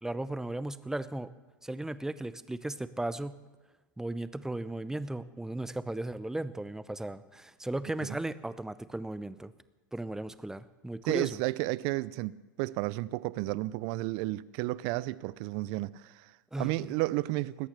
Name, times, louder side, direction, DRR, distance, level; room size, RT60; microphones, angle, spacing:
voice 1, 0.0-1.3 1.6-3.4 4.0-9.5 9.9-11.4 16.5-16.9, right 1 dB, 5° right, 0.7 m, -36 dB
voice 2, 11.1-17.7, right 19 dB, 50° right, 0.5 m, -32 dB
20.5 x 8.8 x 6.7 m
hypercardioid pair, 105°, 11 cm